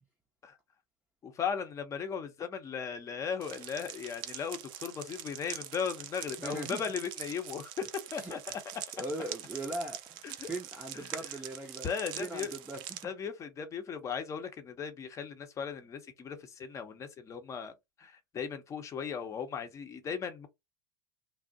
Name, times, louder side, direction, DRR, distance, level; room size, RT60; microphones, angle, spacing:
voice 1, 1.2-8.4 8.7-8.8 10.2-10.5 10.9-11.1 11.8-12.5 13.0-17.7 18.0-20.5, left 6 dB, 30° left, 0.8 m, -37 dB
sound 1, 3.4-13.0, right 11 dB, 50° right, 0.5 m, -44 dB
voice 2, 6.4-6.8 8.2-8.4 9.0-11.9 12.2-13.0, right 1 dB, 10° right, 0.7 m, -39 dB
2.5 x 2.0 x 3.9 m
hypercardioid pair, 95°, 11 cm